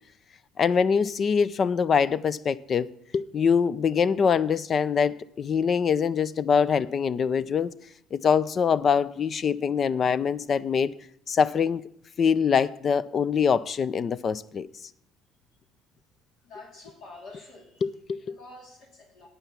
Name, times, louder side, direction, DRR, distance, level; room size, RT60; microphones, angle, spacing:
voice 1, 0.6-2.9 3.1-7.7 8.1-10.9 11.3-11.8 12.2-14.7 17.8-18.2, left 6 dB, 45° left, 0.4 m, -24 dB
voice 2, 16.4-17.8 18.2-19.3, left 2 dB, 65° left, 2.4 m, -47 dB
9.0 x 8.3 x 6.9 m
hypercardioid pair, 65°, 0 cm